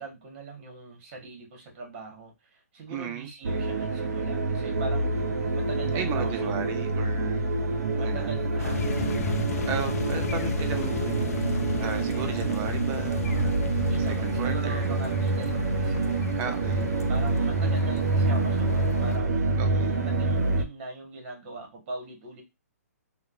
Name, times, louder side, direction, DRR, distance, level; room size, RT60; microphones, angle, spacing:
voice 1, 0.0-6.8 8.0-8.9 13.9-16.3 17.1-22.4, right 3 dB, 40° right, 1.1 m, -41 dB
voice 2, 2.9-3.3 5.9-7.5 7.9-8.3 9.6-13.5 14.1-15.0 16.4-16.9 19.6-20.0, right 7 dB, 20° right, 0.4 m, -35 dB
sound 1, 3.4-20.6, right 3 dB, 70° right, 0.5 m, -27 dB
sound 2, 8.6-19.2, left 6 dB, 65° left, 0.4 m, -34 dB
2.9 x 2.0 x 2.4 m
hypercardioid pair, 145°, 9 cm